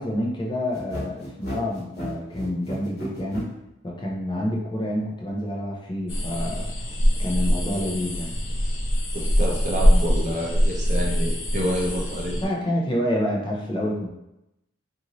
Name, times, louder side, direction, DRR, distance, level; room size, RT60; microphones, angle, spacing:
voice 1, 0.0-3.5 3.8-6.7 7.2-8.3 12.4-14.1, left 1 dB, 25° left, -2 dB, 0.5 m, -28 dB
sound 1, 0.7-3.5, equal, 55° left, 1.1 m, -34 dB
sound 2, 6.1-12.4, equal, 80° left, 0.6 m, -23 dB
voice 2, 9.1-12.3, equal, 40° right, -2 dB, 0.6 m, -28 dB
2.6 x 2.6 x 2.9 m, 0.89 s
head